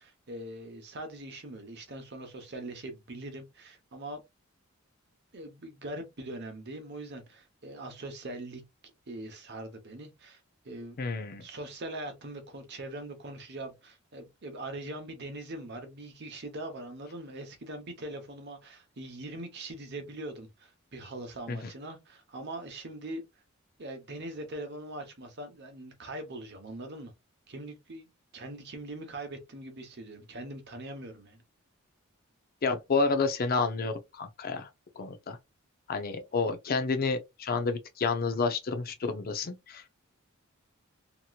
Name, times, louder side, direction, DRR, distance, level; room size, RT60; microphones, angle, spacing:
voice 1, 0.0-4.2 5.3-8.6 9.1-10.4 10.6-11.0 11.4-23.2 23.8-27.1 27.5-28.1 28.3-31.4, right 1 dB, 55° right, 0.9 m, -42 dB
voice 2, 11.0-11.4 21.5-21.6 32.6-34.7 35.0-35.4 35.9-39.9, left 4 dB, 45° left, 0.5 m, -30 dB
2.9 x 2.8 x 2.3 m
head